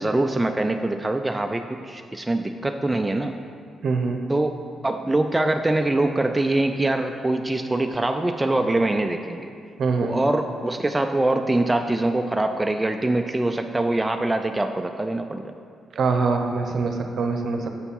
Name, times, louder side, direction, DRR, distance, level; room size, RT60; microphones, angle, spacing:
voice 1, 0.0-3.3 4.3-9.5 10.0-15.5, right 2 dB, 15° right, 5 dB, 0.3 m, -24 dB
voice 2, 3.8-4.2 9.8-10.2 16.0-17.7, right 4 dB, 60° right, 4 dB, 0.7 m, -24 dB
7.0 x 4.4 x 5.4 m, 2.3 s
cardioid pair, 85°, 0 cm